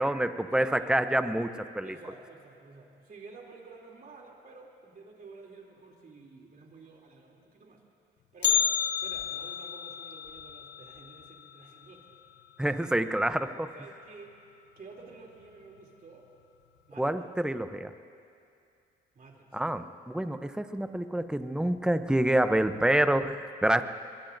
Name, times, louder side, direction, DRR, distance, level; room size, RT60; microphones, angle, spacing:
voice 1, 0.0-1.9 12.6-13.7 17.0-17.9 19.5-23.8, right 1 dB, 5° right, 10 dB, 0.6 m, -27 dB
voice 2, 0.5-1.1 1.8-7.8 8.3-8.7 9.0-12.2 13.6-14.4 14.8-16.3 16.9-17.2 19.1-19.6, right 4 dB, 45° right, -1 dB, 3.0 m, -51 dB
Bell, 8.4-12.5 12.8-12.9 13.4-13.5 14.3-14.4 15.1-15.4 15.8-15.9, left 9 dB, 65° left, 0.9 m, -32 dB
23.5 x 22.5 x 2.6 m, 2.5 s
cardioid pair, 90°, 20 cm